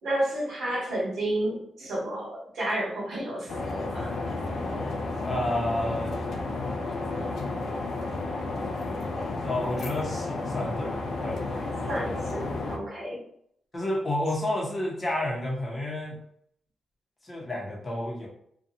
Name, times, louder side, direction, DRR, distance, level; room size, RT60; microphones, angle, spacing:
voice 1, 0.0-4.1 11.9-13.2, right 1 dB, 80° right, -5 dB, 1.2 m, -31 dB
sound 1, 3.5-12.8, left 2 dB, 80° left, 0.3 m, -32 dB
voice 2, 5.3-6.1 9.4-11.4 13.7-16.2 17.2-18.3, left 1 dB, 25° left, -3 dB, 0.7 m, -30 dB
2.7 x 2.2 x 2.6 m, 0.68 s
wide cardioid pair, 140°, 0 cm